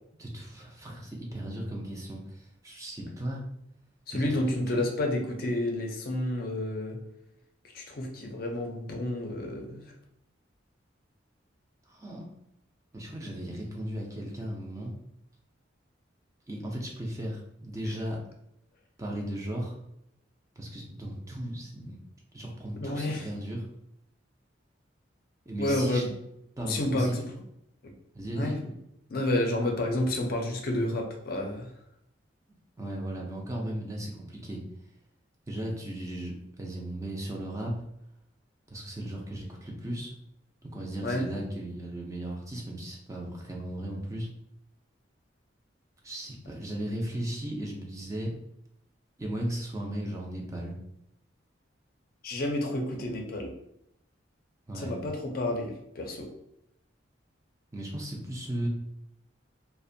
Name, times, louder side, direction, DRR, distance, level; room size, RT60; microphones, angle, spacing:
voice 1, 0.2-3.5 4.1-4.8 11.9-12.3 12.9-15.0 16.5-18.2 19.0-19.8 20.6-22.0 22.3-23.7 25.5-26.1 26.6-27.2 28.1-28.6 32.8-34.6 35.5-37.8 38.7-40.1 40.6-44.3 46.0-48.3 49.2-50.8 54.7-55.0 57.7-58.7, right 1 dB, 15° right, -1 dB, 0.4 m, -36 dB
voice 2, 4.1-7.0 7.7-9.8 17.8-17.9 22.8-23.3 25.6-26.1 26.6-27.2 28.3-28.5 29.1-31.7 41.0-41.3 52.2-53.5 54.7-56.3, left 1 dB, 50° left, 2 dB, 0.5 m, -30 dB
2.5 x 2.1 x 2.6 m, 0.79 s
head